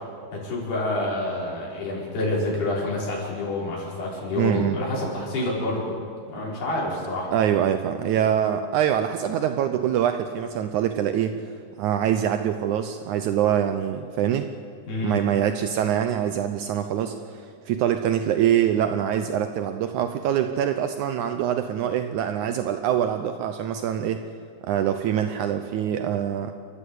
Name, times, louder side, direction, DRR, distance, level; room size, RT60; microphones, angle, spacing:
voice 1, 0.3-5.9 6.3-7.3 14.9-15.3, left 2 dB, 85° left, -4 dB, 7.3 m, -28 dB
voice 2, 4.3-4.8 7.3-11.3 11.8-14.5 15.0-24.2 24.6-26.5, right 10 dB, 85° right, 8 dB, 1.7 m, -24 dB
30.0 x 14.0 x 8.2 m, 2.2 s
omnidirectional pair, 4.4 m